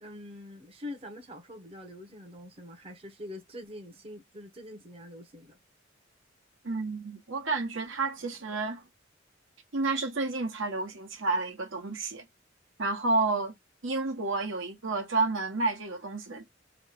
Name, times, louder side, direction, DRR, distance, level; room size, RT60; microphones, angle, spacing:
voice 1, 0.0-5.6, left 1 dB, 30° right, 0.7 m, -44 dB
voice 2, 6.6-8.8 9.7-12.3 12.8-13.5 13.8-16.5, right 3 dB, 80° right, 1.0 m, -30 dB
3.0 x 2.2 x 3.5 m
head